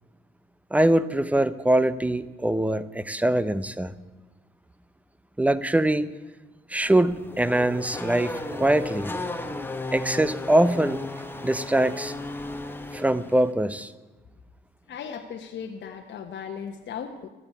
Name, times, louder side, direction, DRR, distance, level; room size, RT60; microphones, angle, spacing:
voice 1, 0.7-3.9 5.4-6.1 6.7-9.1 9.9-11.0 11.4-12.1 12.9-13.9, right 1 dB, 5° right, 16 dB, 0.6 m, -23 dB
Race car auto racing / Accelerating revving vroom, 6.8-13.5, left 2 dB, 10° left, 1.1 m, -35 dB
voice 2, 14.9-17.3, left 7 dB, 65° left, 2 dB, 1.1 m, -37 dB
13.0 x 8.7 x 8.4 m, 1.2 s
cardioid pair, 90°, 20 cm